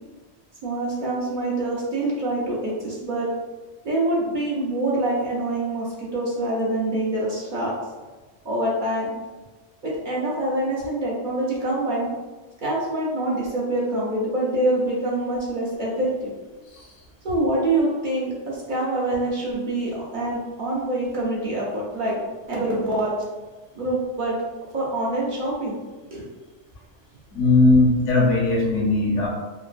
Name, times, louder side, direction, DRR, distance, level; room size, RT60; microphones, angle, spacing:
voice 1, 0.6-3.3 3.8-7.7 8.4-9.1 9.8-12.1 12.6-16.3 17.2-22.1 22.5-23.1 23.7-24.4 24.7-25.8 26.1-26.2, right 1 dB, 50° right, -6 dB, 0.7 m, -25 dB
voice 2, 27.3-29.3, left 2 dB, 85° left, -2 dB, 1.1 m, -18 dB
3.1 x 2.1 x 2.4 m, 1.2 s
omnidirectional pair, 1.2 m